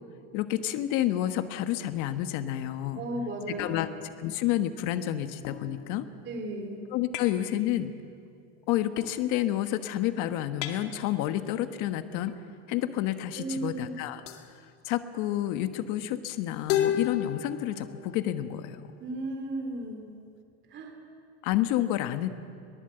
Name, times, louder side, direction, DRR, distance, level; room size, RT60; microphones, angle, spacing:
voice 1, 0.3-3.0 3.6-3.9 4.2-6.1 6.9-7.9 8.7-12.3 12.7-14.2 14.8-18.8 21.4-22.3, left 13 dB, 55° left, 9 dB, 1.3 m, -29 dB
voice 2, 3.0-3.9 6.3-6.8 13.4-13.9 19.0-20.1 20.7-20.9, right 2 dB, 30° right, 3 dB, 3.7 m, -35 dB
sound 1, 3.6-4.6 5.4-6.3 7.1-7.5 9.0-9.6 10.6-11.5 12.3-12.5 13.7-13.8 14.3-14.6 16.7-19.5, left 10 dB, 85° left, 2.2 m, -35 dB
22.5 x 19.5 x 7.9 m, 2.3 s
supercardioid pair, 150°, 37 cm